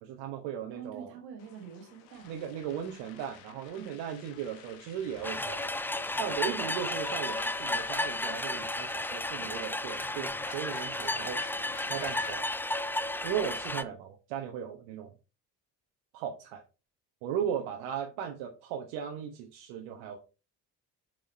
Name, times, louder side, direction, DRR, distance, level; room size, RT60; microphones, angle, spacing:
voice 1, 0.0-1.1 2.3-5.6 6.2-11.4 11.8-12.4 13.2-15.1 16.1-16.6 17.2-20.2, right 9 dB, 70° right, 2 dB, 1.2 m, -37 dB
voice 2, 0.7-2.5 3.8-4.0, right 7 dB, 85° right, 2 dB, 1.9 m, -46 dB
sound 1, 1.4-9.5, left 9 dB, 75° left, 1.1 m, -54 dB
sound 2, 5.0-12.3, left 4 dB, 45° left, 2.7 m, -50 dB
sound 3, 5.2-13.8, left 1 dB, 5° left, 0.4 m, -33 dB
7.5 x 4.8 x 4.3 m, 0.30 s
hypercardioid pair, 45°, 49 cm